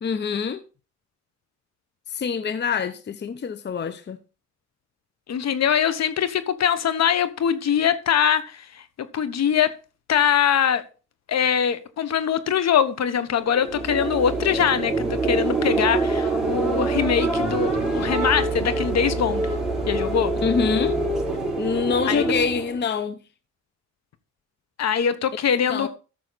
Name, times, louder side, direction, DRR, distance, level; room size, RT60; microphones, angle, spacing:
voice 1, 0.0-0.6 2.1-4.2 20.4-21.0 21.6-23.2 25.7-25.9, left 6 dB, 35° left, 0.7 m, -25 dB
voice 2, 5.3-9.7 10.1-10.8 11.3-19.5 19.9-20.3 22.1-22.2 24.8-25.9, left 8 dB, 60° left, 1.3 m, -22 dB
sound 1, 13.4-22.8, right 2 dB, ahead, 4.3 m, -25 dB
14.0 x 6.3 x 4.1 m
cardioid pair, 90°, 30 cm